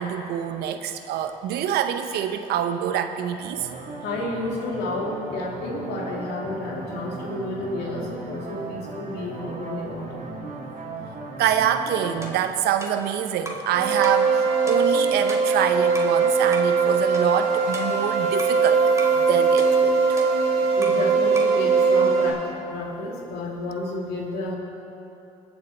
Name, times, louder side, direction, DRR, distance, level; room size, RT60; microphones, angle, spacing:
voice 1, 0.0-3.7 11.4-18.8 19.2-20.2, right 9 dB, 65° right, 8 dB, 0.9 m, -26 dB
sound 1, 3.4-12.3, right 3 dB, 50° right, 2.3 m, -37 dB
voice 2, 4.0-10.3 20.8-24.6, left 2 dB, 65° left, -2 dB, 2.8 m, -31 dB
sound 2, 12.2-13.7 14.0-14.3 14.7-16.2 16.5-16.8 17.1-18.6 19.0-19.2 19.6-21.1 21.3-21.6, right 1 dB, 15° right, 1.8 m, -38 dB
sound 3, 13.7-22.3, right 5 dB, 85° right, 2.4 m, -20 dB
21.0 x 7.3 x 4.5 m, 2.8 s
supercardioid pair, 75°, 18 cm